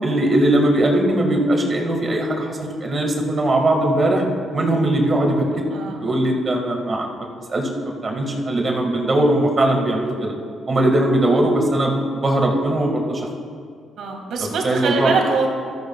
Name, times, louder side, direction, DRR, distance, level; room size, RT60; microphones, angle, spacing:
voice 1, 0.0-4.2 4.5-5.6 6.0-7.1 7.5-10.3 10.7-11.9 12.2-13.3 14.4-15.1, right 1 dB, 35° right, 1 dB, 1.8 m, -20 dB
voice 2, 5.7-6.0 14.0-15.5, right 4 dB, 75° right, 1 dB, 1.9 m, -23 dB
14.5 x 13.0 x 2.3 m, 2.2 s
cardioid pair, 90°, 0 cm